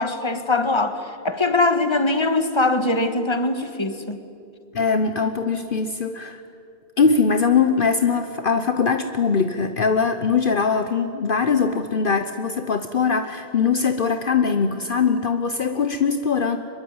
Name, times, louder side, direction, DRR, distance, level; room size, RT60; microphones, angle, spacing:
voice 1, 0.0-4.2, left 2 dB, 25° left, 9 dB, 1.6 m, -22 dB
voice 2, 4.7-6.4 7.0-16.6, left 5 dB, 55° left, 9 dB, 1.1 m, -21 dB
24.5 x 21.5 x 9.5 m, 2.5 s
omnidirectional pair, 1.1 m